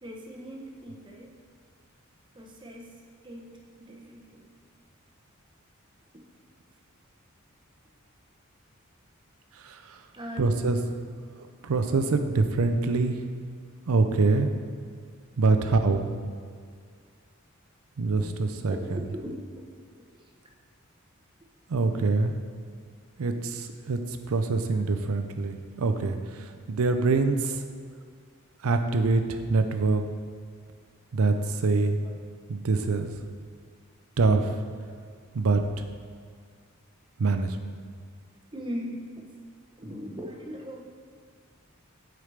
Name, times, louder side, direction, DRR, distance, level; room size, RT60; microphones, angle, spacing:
voice 1, 0.0-1.4 2.3-4.5 6.1-6.2 10.1-10.6 12.0-12.1 15.5-15.9 18.7-19.6 24.8-25.0 32.0-32.2 37.6-37.7 38.5-39.3 39.8-40.8, equal, 20° right, 0 dB, 0.8 m, -40 dB
voice 2, 9.6-10.0 10.4-10.8 11.6-13.2 13.9-14.5 15.4-16.0 18.0-19.0 21.7-22.3 23.2-27.6 28.6-30.0 31.1-32.0 32.5-33.1 34.2-34.6 35.3-35.6 37.2-37.6, right 3 dB, 85° right, 7 dB, 0.5 m, -25 dB
8.6 x 4.7 x 3.3 m, 2.1 s
head